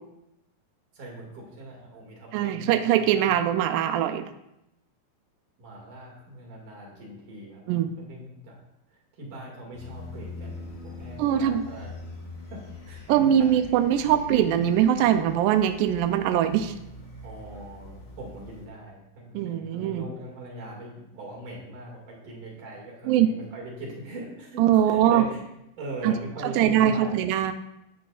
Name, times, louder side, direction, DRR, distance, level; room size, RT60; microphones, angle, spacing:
voice 1, 0.9-3.3 5.6-8.6 9.2-11.9 12.5-13.5 17.2-25.4 25.8-27.2, right 2 dB, 55° right, -2 dB, 3.6 m, -40 dB
voice 2, 2.3-4.3 7.7-7.9 11.2-11.6 13.1-16.7 19.3-20.0 23.1-23.3 24.6-25.2 26.0-26.2 26.4-27.5, right 10 dB, 85° right, 7 dB, 1.9 m, -22 dB
sound 1, 9.7-18.7, left 2 dB, 35° left, 1.2 m, -43 dB
12.0 x 9.3 x 2.5 m, 0.85 s
omnidirectional pair, 4.4 m